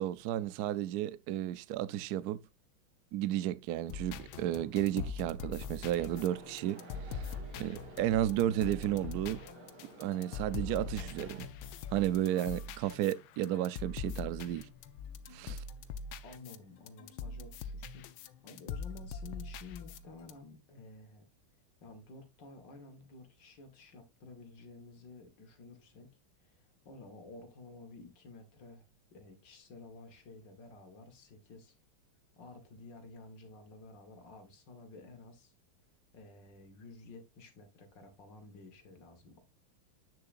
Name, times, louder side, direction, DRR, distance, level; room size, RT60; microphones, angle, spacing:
voice 1, 0.0-2.4 3.1-6.9 7.1-9.4 10.0-11.5 11.9-14.7 15.3-15.6, right 12 dB, 85° right, 0.8 m, -33 dB
sound 1, 3.9-16.6 16.9-20.3, left 4 dB, 80° left, 1.5 m, -43 dB
sound 2, 6.1-11.4, right 3 dB, 55° right, 2.9 m, -53 dB
voice 2, 16.2-21.3 21.8-26.1 26.4-31.8 32.4-35.5 36.1-39.4, left 3 dB, 60° left, 2.1 m, -52 dB
8.5 x 6.7 x 2.5 m
omnidirectional pair, 2.2 m